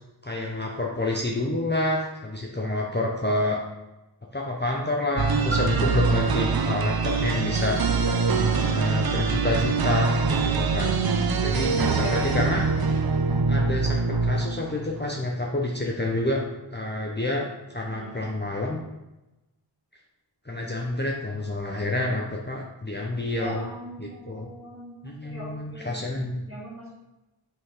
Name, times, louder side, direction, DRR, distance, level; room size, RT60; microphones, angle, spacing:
voice 1, 0.2-3.6 4.3-7.8 8.7-11.0 11.4-12.6 13.5-16.4 16.7-18.8 20.4-23.7 24.0-24.5 25.0-26.4, left 2 dB, 25° left, -2 dB, 0.8 m, -28 dB
sound 1, 5.2-15.0, right 4 dB, 55° right, 0.5 m, -24 dB
Piano, 5.5-10.9 11.7-11.8, right 2 dB, 55° left, 2.2 m, -41 dB
voice 2, 11.8-12.5 17.9-18.2 23.3-25.0 25.2-26.9, equal, 30° right, -5 dB, 2.2 m, -38 dB
5.4 x 3.8 x 5.0 m, 0.98 s
wide cardioid pair, 45°, 45 cm